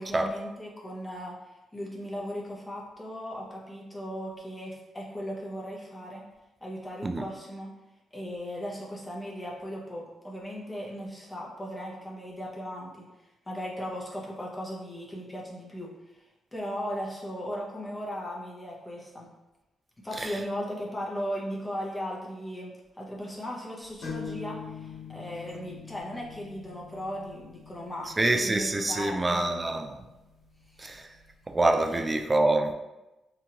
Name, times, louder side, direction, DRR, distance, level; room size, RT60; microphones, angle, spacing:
voice 1, 0.0-6.2 6.6-7.7 8.1-13.1 13.5-16.2 16.5-19.3 20.0-29.8 30.7-30.8 31.9-32.0, equal, 15° left, 0.7 m, -37 dB
sound 1, 24.0-31.5, left 6 dB, 75° left, 1.1 m, -44 dB
voice 2, 28.2-30.0 30.8-31.1 31.5-32.7, right 2 dB, 25° right, 0.3 m, -26 dB
2.9 x 2.3 x 2.8 m
cardioid pair, 85°, 0 cm